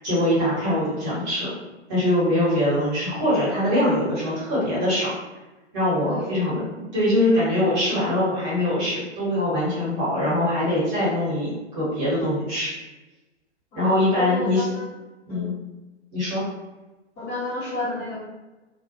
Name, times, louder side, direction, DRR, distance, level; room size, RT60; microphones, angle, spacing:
voice 1, 0.0-1.5 1.9-5.1 5.7-12.7 13.7-14.6 15.3-15.5 16.1-16.4, left 1 dB, 20° right, -8 dB, 1.1 m, -23 dB
voice 2, 6.1-6.4 13.7-14.9 15.3-15.5 17.2-18.2, left 2 dB, 15° left, -8 dB, 0.7 m, -31 dB
2.3 x 2.2 x 2.8 m, 1.1 s
figure-of-eight pair, 125°, 36 cm